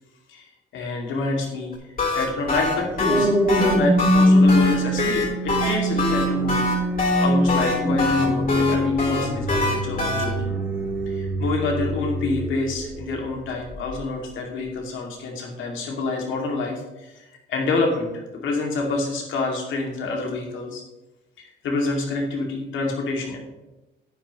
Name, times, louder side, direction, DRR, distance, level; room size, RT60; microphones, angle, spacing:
voice 1, 0.7-1.7 2.1-6.6 7.2-10.5 11.1-20.8 21.4-23.4, left 3 dB, 80° left, 0 dB, 2.5 m, -27 dB
sound 1, 1.7-10.2, left 3 dB, 45° left, 3.9 m, -24 dB
sound 2, 2.6-13.1 13.7-14.0, equal, 10° right, 3.3 m, -23 dB
11.0 x 9.1 x 3.1 m, 1.0 s
cardioid pair, 90°, 20 cm